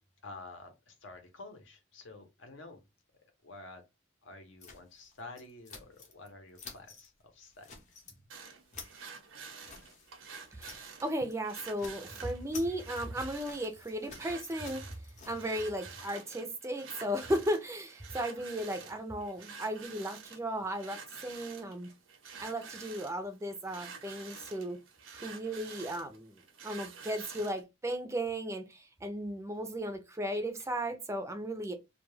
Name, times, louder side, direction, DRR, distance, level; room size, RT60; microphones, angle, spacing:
voice 1, 0.0-2.8 3.4-3.8 4.2-7.8 18.8-18.9 30.6-30.7, left 2 dB, 70° left, 0.8 m, -50 dB
sound 1, 4.6-6.3 6.5-7.1 7.4-8.2 8.5-11.0 11.2-11.4 11.7-15.6, left 5 dB, 40° left, 0.6 m, -51 dB
sound 2, 8.3-27.6, right 5 dB, 85° right, 0.7 m, -49 dB
voice 2, 10.6-14.9 15.3-21.9 22.4-24.8 25.1-31.7, right 1 dB, 15° right, 0.4 m, -35 dB
2.3 x 2.2 x 3.1 m
head